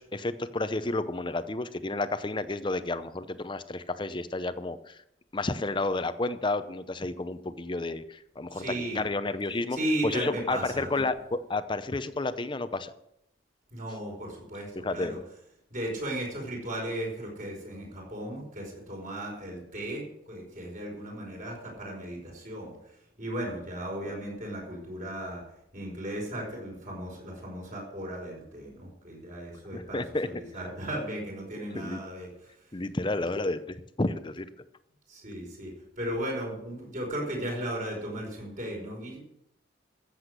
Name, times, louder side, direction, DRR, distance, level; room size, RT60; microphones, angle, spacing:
voice 1, 0.0-5.0 5.3-9.8 10.0-12.9 14.8-15.2 23.9-24.0 29.7-30.3 31.6-32.0 32.7-34.5, left 2 dB, 25° left, 12 dB, 0.6 m, -31 dB
voice 2, 8.5-9.0 9.7-11.0 13.7-15.2 15.7-22.7 23.2-25.4 25.7-32.3 35.1-35.7 36.0-39.2, right 1 dB, 45° right, -1 dB, 4.9 m, -36 dB
14.0 x 7.9 x 6.6 m, 0.79 s
head